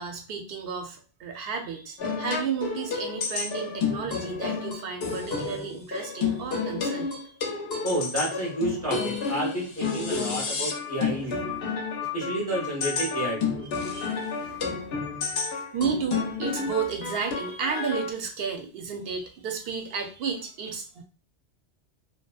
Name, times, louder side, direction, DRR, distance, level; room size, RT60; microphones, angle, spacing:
voice 1, 0.0-7.4 13.9-14.8 15.4-21.0, right 6 dB, 65° right, 4 dB, 0.7 m, -33 dB
sound 1, 2.0-18.1, left 5 dB, 65° left, 0.8 m, -31 dB
voice 2, 7.8-11.6 12.1-13.7, right 1 dB, 20° left, -3 dB, 0.6 m, -30 dB
2.7 x 2.1 x 2.3 m, 0.38 s
omnidirectional pair, 1.1 m